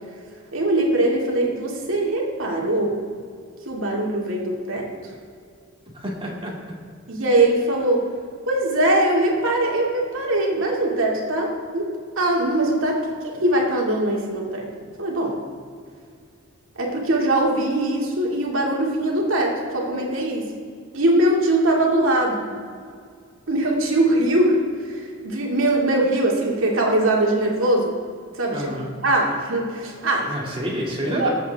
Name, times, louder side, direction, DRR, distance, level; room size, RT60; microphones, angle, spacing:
voice 1, 0.5-3.0 3.7-4.9 7.1-8.0 8.5-11.9 12.2-14.7 15.0-15.4 16.8-20.5 20.9-22.5 23.5-27.9 28.3-28.6 29.0-30.3 31.1-31.3, right 1 dB, 70° right, -1 dB, 2.4 m, -21 dB
voice 2, 5.9-6.5 28.5-28.9 30.3-31.3, equal, 25° right, -2 dB, 2.5 m, -28 dB
20.5 x 8.2 x 3.5 m, 2.2 s
head